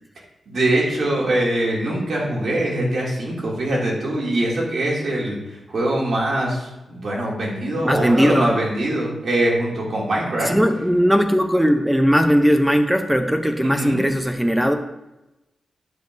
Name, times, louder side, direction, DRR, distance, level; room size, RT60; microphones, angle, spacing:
voice 1, 0.5-10.5 13.6-14.0, right 1 dB, 65° right, -3 dB, 2.6 m, -23 dB
voice 2, 7.8-8.6 10.5-14.7, equal, 5° right, 6 dB, 0.7 m, -18 dB
9.4 x 6.6 x 2.7 m, 0.97 s
wide cardioid pair, 95°, 0 cm